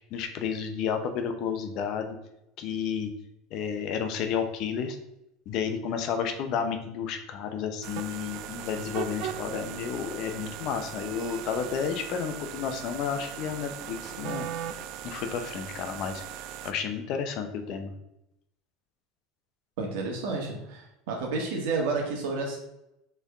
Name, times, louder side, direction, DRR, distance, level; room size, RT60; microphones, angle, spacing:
voice 1, 0.1-2.2 2.6-3.1 3.5-5.0 5.5-14.5 15.0-16.2 16.6-17.9, left 7 dB, 50° left, 6 dB, 0.6 m, -31 dB
sound 1, 7.8-16.7, right 10 dB, 55° right, 0.4 m, -38 dB
voice 2, 19.8-22.6, right 3 dB, 75° right, 0 dB, 1.4 m, -30 dB
4.5 x 3.4 x 3.5 m, 0.85 s
supercardioid pair, 140°, 0 cm